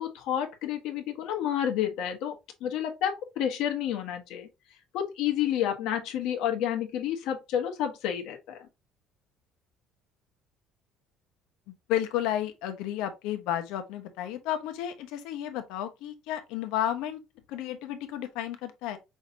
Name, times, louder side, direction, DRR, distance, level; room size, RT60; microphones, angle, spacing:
voice 1, 0.0-2.3 2.6-4.5 4.9-8.6 17.7-17.8 18.9-19.0, left 10 dB, 65° left, 1.2 m, -30 dB
voice 2, 11.9-17.2 17.5-19.0, left 11 dB, 85° left, 0.9 m, -32 dB
5.5 x 3.2 x 2.7 m
cardioid pair, 170°, 0 cm